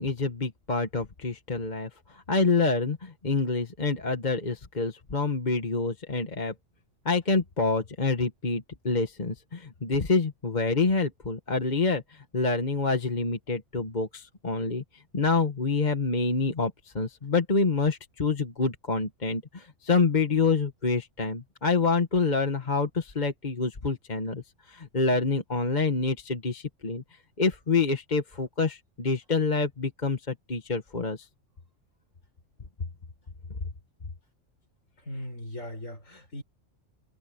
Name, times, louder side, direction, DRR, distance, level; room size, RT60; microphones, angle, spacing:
voice 1, 0.0-6.5 7.0-27.0 27.4-31.3, left 4 dB, 35° left, 1.6 m, -27 dB
voice 2, 35.0-36.4, left 1 dB, 85° left, 7.4 m, -38 dB
omnidirectional pair, 1.3 m